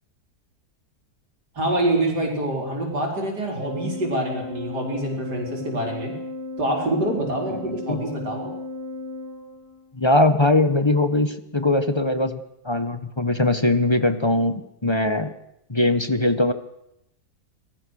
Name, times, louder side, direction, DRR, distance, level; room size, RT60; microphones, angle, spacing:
voice 1, 1.6-6.1 6.6-8.5, right 1 dB, 85° right, 0 dB, 5.2 m, -26 dB
Organ, 3.5-10.1, left 2 dB, 70° left, 4.1 m, -35 dB
voice 2, 7.5-8.0 9.9-15.3 15.7-16.5, left 2 dB, 20° left, 10 dB, 1.3 m, -21 dB
27.0 x 19.5 x 6.6 m, 0.83 s
omnidirectional pair, 1.7 m